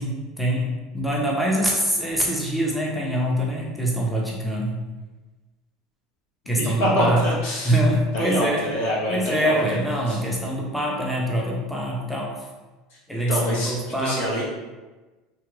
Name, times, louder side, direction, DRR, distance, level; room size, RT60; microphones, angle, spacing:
voice 1, 0.0-4.8 6.5-7.3 7.6-8.7 9.1-12.3 13.1-14.2, right 1 dB, ahead, -4 dB, 0.5 m, -24 dB
voice 2, 6.6-7.8 8.1-9.6 10.1-10.2 13.3-14.4, equal, 90° left, -5 dB, 1.0 m, -25 dB
2.8 x 2.3 x 3.1 m, 1.2 s
supercardioid pair, 145°, 0 cm